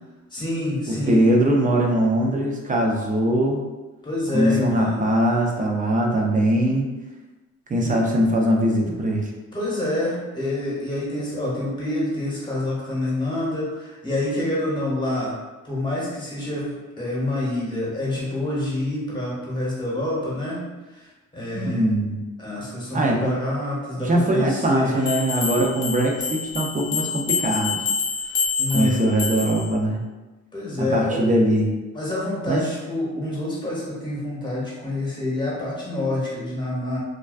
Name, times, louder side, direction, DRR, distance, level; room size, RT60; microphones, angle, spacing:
voice 1, 0.3-1.2 4.0-5.1 7.8-8.0 9.5-15.3 15.6-20.6 20.9-21.1 21.3-21.9 22.4-25.1 28.2-29.0 30.5-31.2 31.9-37.0, left 1 dB, 15° left, -6 dB, 1.0 m, -27 dB
voice 2, 0.9-3.6 4.3-6.9 7.7-9.3 21.5-22.2 22.9-23.4 24.0-27.8 28.7-30.0 30.8-31.7 32.5-32.7, right 1 dB, 25° right, 0 dB, 0.4 m, -21 dB
sound 1, 25.1-29.7, left 5 dB, 40° left, 0.7 m, -27 dB
2.3 x 2.2 x 2.4 m, 1.1 s
cardioid pair, 90°, 30 cm